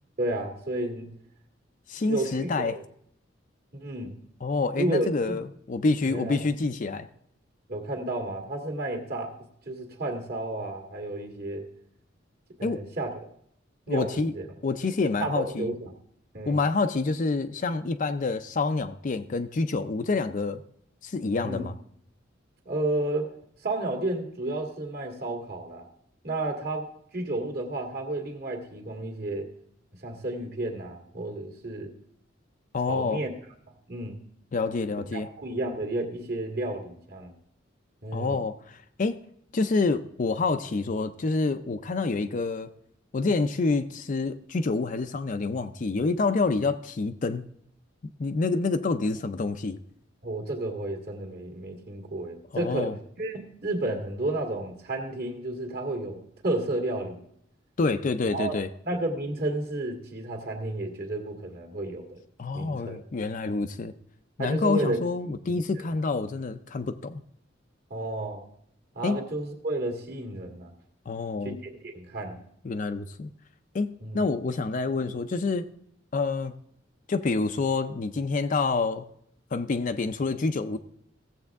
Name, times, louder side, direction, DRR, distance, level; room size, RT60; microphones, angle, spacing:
voice 1, 0.2-1.1 2.0-2.8 3.7-4.2 4.8-5.4 6.1-6.4 7.7-9.3 9.7-11.7 12.6-13.1 13.9-14.4 15.2-15.9 16.3-16.6 21.4-21.7 22.7-23.3 23.6-25.9 26.2-29.5 30.0-31.9 32.9-33.3 33.7-34.2 35.1-37.3 38.0-38.4 50.2-57.2 58.2-58.5 58.8-62.2 62.5-63.0 64.4-65.0 65.5-65.6 67.9-68.4 69.0-70.7 71.4-72.4 74.0-74.2, right 2 dB, 50° right, 2 dB, 2.0 m, -32 dB
voice 2, 1.9-2.8 4.4-7.1 12.6-12.8 13.9-14.3 14.6-15.7 16.5-20.6 21.0-21.8 32.7-33.2 34.5-35.3 38.1-38.6 39.0-39.2 39.5-42.7 43.1-47.4 48.2-49.8 52.5-52.9 57.8-58.7 62.4-63.9 64.4-67.2 69.0-69.2 71.1-71.6 72.6-73.3 73.7-75.7 76.1-76.5 77.1-79.1 79.5-80.8, left 3 dB, 45° left, 8 dB, 0.4 m, -27 dB
16.0 x 7.5 x 3.5 m, 0.68 s
head